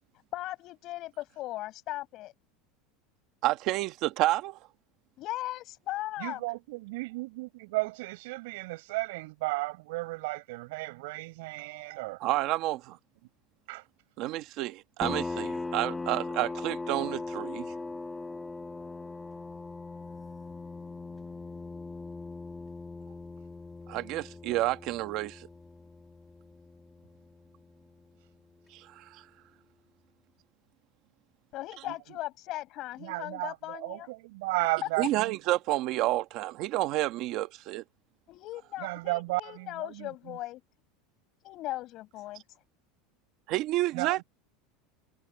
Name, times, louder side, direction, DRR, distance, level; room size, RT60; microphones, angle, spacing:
voice 1, 0.3-2.3 5.2-6.4 31.5-34.1 34.8-35.1 38.3-40.6 41.4-42.4, left 16 dB, 40° left, 7.2 m, -38 dB
voice 2, 3.4-4.6 12.2-13.0 14.2-17.7 23.9-25.5 28.7-29.2 35.0-37.8 43.5-44.2, right 16 dB, 40° right, 1.3 m, -30 dB
voice 3, 6.2-12.2 13.7-13.8 31.9-32.0 33.0-35.4 38.8-40.1 43.9-44.2, right 23 dB, 70° right, 7.0 m, -34 dB
sound 1, 15.0-28.3, left 3 dB, 10° left, 2.1 m, -40 dB
supercardioid pair, 170°, 0 cm